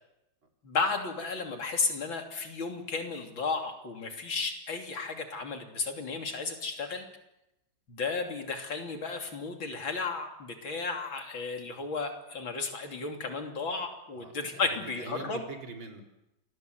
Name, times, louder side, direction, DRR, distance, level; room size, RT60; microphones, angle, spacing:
voice 1, 0.6-7.1 7.9-15.4, left 4 dB, 80° left, 3 dB, 3.9 m, -33 dB
voice 2, 14.1-16.0, right 3 dB, 80° right, 2 dB, 4.3 m, -43 dB
28.0 x 21.5 x 8.0 m, 0.93 s
omnidirectional pair, 2.1 m